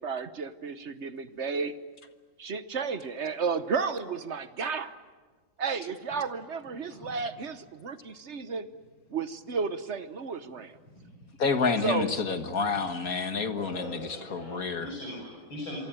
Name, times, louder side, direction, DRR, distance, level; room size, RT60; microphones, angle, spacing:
voice 1, 0.0-1.7 2.4-5.0 5.6-8.7 9.1-10.8 11.8-12.1, right 5 dB, 45° right, 12 dB, 1.0 m, -32 dB
voice 2, 6.9-7.4 10.9-11.1 11.8-12.1 12.9-13.0 13.5-15.8, left 2 dB, 75° left, -1 dB, 6.4 m, -41 dB
voice 3, 11.4-14.9, left 4 dB, 45° left, 7 dB, 1.9 m, -29 dB
27.5 x 24.0 x 9.0 m, 1.4 s
omnidirectional pair, 2.2 m